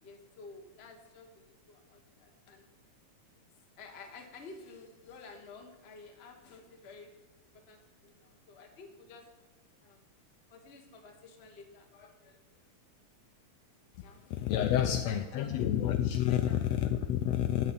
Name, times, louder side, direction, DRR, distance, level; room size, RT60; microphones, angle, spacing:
voice 1, 0.0-2.7 3.8-7.1 7.7-9.2 9.8-10.0 10.5-12.6 14.0-16.7, left 4 dB, 35° left, 3 dB, 1.0 m, -52 dB
voice 2, 14.3-17.7, left 11 dB, 80° left, 8 dB, 1.6 m, -29 dB
13.5 x 4.8 x 8.7 m, 1.2 s
omnidirectional pair, 3.3 m